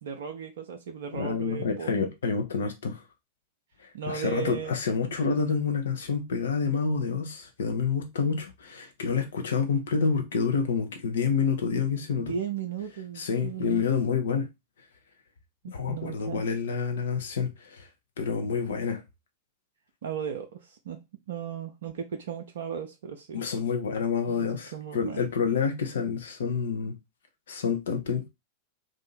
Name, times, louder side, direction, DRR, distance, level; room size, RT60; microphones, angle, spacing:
voice 1, 0.0-1.9 3.9-4.7 12.2-13.8 15.9-16.4 20.0-21.0 21.3-23.4 24.3-25.2, right 8 dB, 60° right, 0.5 m, -36 dB
voice 2, 1.1-3.0 3.8-12.3 13.1-14.5 15.7-17.9 18.2-19.0 23.3-27.0 27.5-28.3, left 5 dB, 65° left, 0.8 m, -28 dB
2.7 x 2.5 x 4.0 m
figure-of-eight pair, 90°, 0 cm